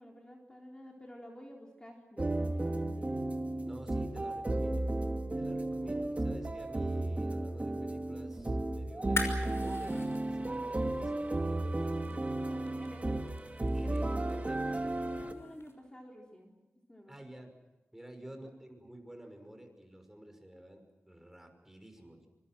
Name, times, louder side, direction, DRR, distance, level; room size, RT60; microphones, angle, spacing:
voice 1, 0.0-3.1 4.2-4.8 12.5-13.2 14.8-16.6 16.9-17.2 18.3-18.4, equal, 20° left, 0 dB, 4.0 m, -52 dB
sound 1, 2.2-15.3, right 2 dB, 30° right, 2.3 m, -34 dB
voice 2, 3.6-4.9 5.4-11.9 13.7-14.7 17.1-17.5 17.9-22.3, right 1 dB, 10° right, 5 dB, 6.0 m, -51 dB
sound 2, 8.9-15.7, left 3 dB, 70° left, 5.8 m, -44 dB
26.0 x 25.5 x 6.2 m, 1.1 s
wide cardioid pair, 75°, 5 cm